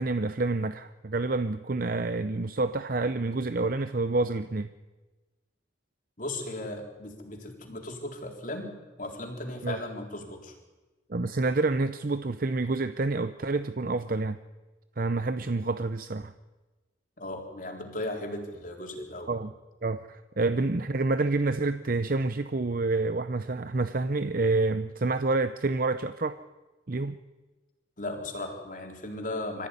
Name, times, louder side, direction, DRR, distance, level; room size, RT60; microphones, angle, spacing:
voice 1, 0.0-4.7 9.6-9.8 11.1-14.4 15.0-16.3 19.3-19.5 19.8-26.4 26.9-27.2, right 3 dB, 50° right, 0.7 m, -28 dB
voice 2, 6.2-10.5 17.2-19.3 28.0-29.7, left 1 dB, 45° left, 3.9 m, -36 dB
25.5 x 15.0 x 9.9 m
head